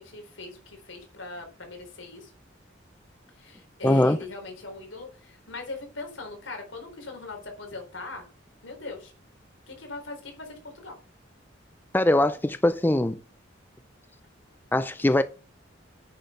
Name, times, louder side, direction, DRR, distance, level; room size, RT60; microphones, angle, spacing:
voice 1, 0.0-2.3 3.4-8.3 8.6-9.1 9.7-11.0, left 3 dB, 75° left, 4.0 m, -40 dB
voice 2, 3.8-4.2 11.9-13.2 14.7-15.2, left 1 dB, 10° left, 0.4 m, -21 dB
9.5 x 6.8 x 5.8 m
head